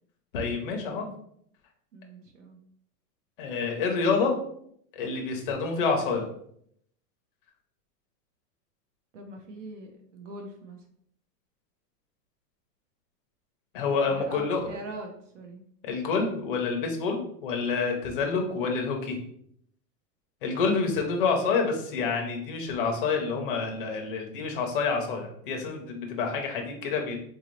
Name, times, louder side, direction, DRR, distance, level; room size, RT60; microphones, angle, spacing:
voice 1, 0.3-1.1 3.4-4.3 4.9-6.3 13.7-14.7 15.8-19.2 20.4-27.2, left 4 dB, 35° left, 2 dB, 0.6 m, -28 dB
voice 2, 1.9-2.6 9.1-10.8 14.1-15.6, right 2 dB, 50° right, 4 dB, 0.5 m, -42 dB
3.9 x 2.6 x 3.0 m, 0.67 s
supercardioid pair, 165°, 48 cm